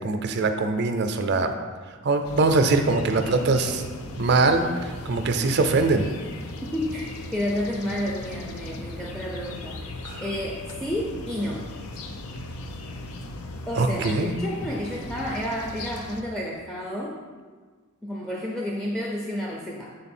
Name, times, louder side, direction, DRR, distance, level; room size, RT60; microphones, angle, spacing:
voice 1, 0.0-1.5 2.0-3.8 4.2-6.1 10.0-10.2 13.8-14.3, right 3 dB, 50° right, 6 dB, 0.5 m, -22 dB
sound 1, 2.2-16.2, left 2 dB, 90° left, 0.6 m, -38 dB
voice 2, 6.6-11.7 13.7-17.2 18.0-20.0, equal, ahead, -3 dB, 0.4 m, -31 dB
6.8 x 3.8 x 4.3 m, 1.5 s
head